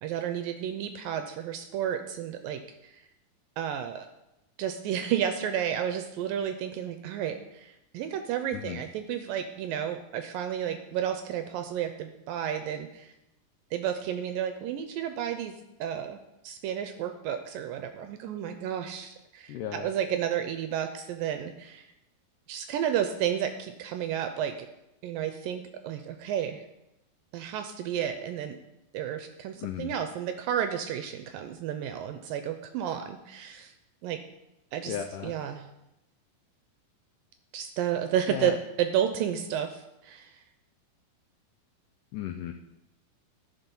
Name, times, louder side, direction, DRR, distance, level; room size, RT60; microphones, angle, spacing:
voice 1, 0.0-2.6 3.6-4.1 4.6-13.1 13.7-15.5 15.8-16.2 16.4-21.9 22.5-24.5 25.0-26.6 27.3-28.6 28.9-33.7 34.0-34.2 34.7-35.0 35.2-35.7 37.5-40.3, right 9 dB, 80° right, 7 dB, 2.1 m, -31 dB
voice 2, 19.5-19.9 29.6-29.9 34.9-35.3 38.3-38.6 42.1-42.5, left 10 dB, 90° left, 5 dB, 1.8 m, -35 dB
13.0 x 6.0 x 5.4 m, 0.91 s
omnidirectional pair, 4.5 m